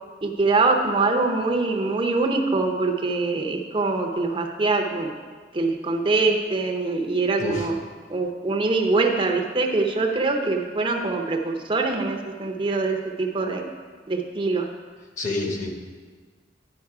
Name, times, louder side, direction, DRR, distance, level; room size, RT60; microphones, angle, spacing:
voice 1, 0.2-5.1 5.5-7.7 8.1-13.6 14.1-14.7, right 3 dB, 30° right, 2 dB, 0.6 m, -23 dB
voice 2, 7.4-7.7 15.2-15.9, left 2 dB, 45° left, 1 dB, 1.2 m, -28 dB
10.5 x 5.1 x 4.7 m, 1.5 s
head